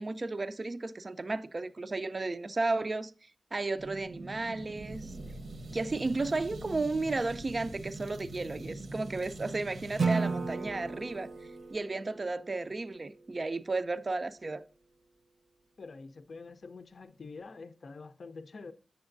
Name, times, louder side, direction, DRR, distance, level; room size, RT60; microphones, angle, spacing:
voice 1, 0.0-3.1 3.5-5.1 5.7-11.3 11.7-14.6, right 3 dB, 40° right, 0.4 m, -33 dB
sound 1, 3.8-11.8, right 2 dB, 90° right, 1.0 m, -44 dB
Acoustic guitar / Strum, 10.0-13.1, right 4 dB, 70° right, 0.7 m, -34 dB
voice 2, 15.8-18.7, left 4 dB, 65° left, 0.5 m, -46 dB
7.8 x 7.2 x 2.5 m
wide cardioid pair, 75°, 0 cm